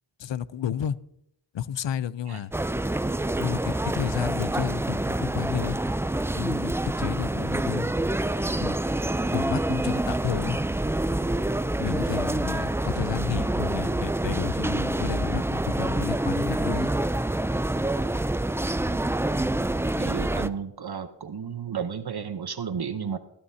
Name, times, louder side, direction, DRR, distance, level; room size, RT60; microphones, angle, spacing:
voice 1, 0.2-1.0 1.5-2.5 3.4-5.8 6.3-7.9 8.6-8.8 9.3-10.6 11.8-16.9, left 10 dB, 75° left, 18 dB, 0.6 m, -31 dB
sound 1, 2.5-20.5, right 1 dB, 5° right, 0.4 m, -27 dB
voice 2, 20.0-23.2, right 7 dB, 60° right, 10 dB, 0.9 m, -33 dB
16.0 x 11.5 x 2.8 m, 0.76 s
cardioid pair, 50°, 43 cm